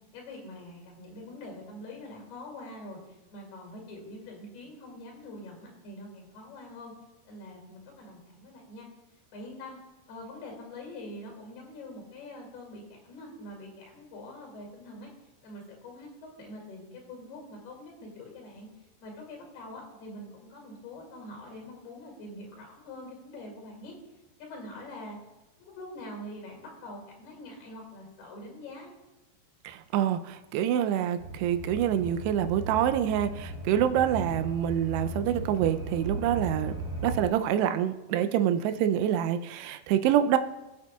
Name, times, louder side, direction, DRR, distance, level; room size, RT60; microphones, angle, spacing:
voice 1, 0.1-6.9 7.3-8.9 9.3-9.8 10.1-15.1 15.4-16.1 16.4-18.7 19.0-24.0 24.4-25.2 25.6-28.9 38.7-38.9, left 1 dB, 70° left, 0 dB, 4.1 m, -44 dB
voice 2, 29.6-36.7 37.0-40.4, right 10 dB, 85° right, 9 dB, 2.7 m, -26 dB
sound 1, 31.2-37.3, right 2 dB, 15° right, 1.7 m, -37 dB
21.0 x 7.8 x 2.3 m, 1.0 s
omnidirectional pair, 4.8 m